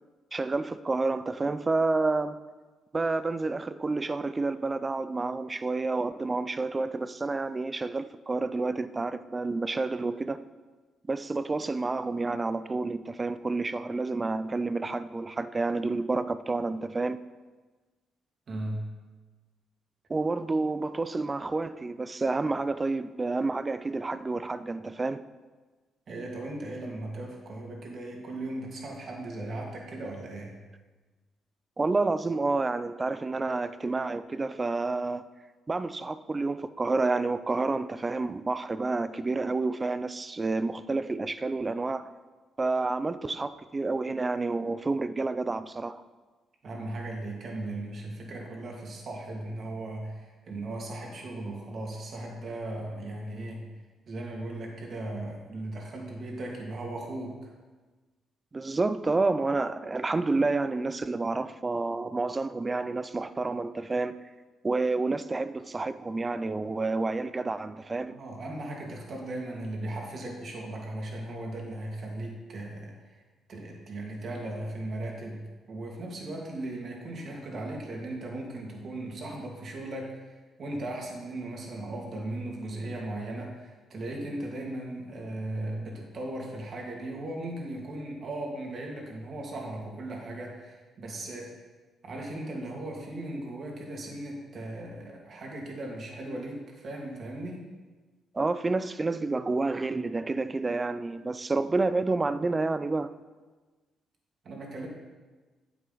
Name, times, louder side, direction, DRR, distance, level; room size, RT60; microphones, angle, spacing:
voice 1, 0.3-2.4 2.9-10.4 11.1-17.2 20.1-25.2 31.8-35.2 35.7-42.1 42.6-46.0 58.5-64.2 64.6-68.1 98.3-103.1, right 3 dB, 25° right, 0.4 m, -29 dB
voice 2, 18.5-18.9 26.1-30.6 46.6-53.7 54.1-57.5 68.1-73.2 73.5-80.3 80.6-91.6 92.0-97.7 104.4-104.9, right 1 dB, 50° right, 2.3 m, -37 dB
9.5 x 8.6 x 4.0 m
cardioid pair, 90°, 0 cm